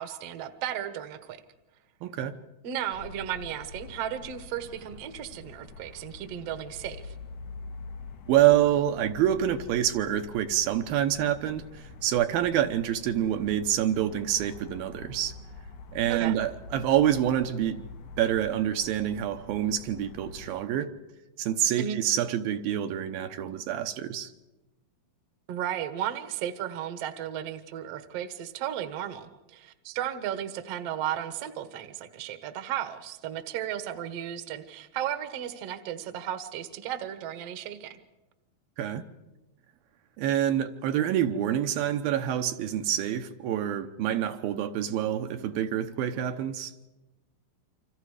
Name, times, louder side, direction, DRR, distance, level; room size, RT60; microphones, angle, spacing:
voice 1, 0.0-1.4 2.6-7.1 16.1-16.4 21.8-22.0 25.5-38.0, right 10 dB, 60° right, 1.8 m, -34 dB
voice 2, 2.0-2.4 8.3-15.3 15.9-17.9 18.2-20.9 21.4-24.3 38.8-39.0 40.2-46.7, right 11 dB, 75° right, 2.7 m, -27 dB
sound 1, 2.9-20.6, left 4 dB, 80° left, 3.6 m, -45 dB
29.0 x 26.0 x 5.0 m
omnidirectional pair, 4.4 m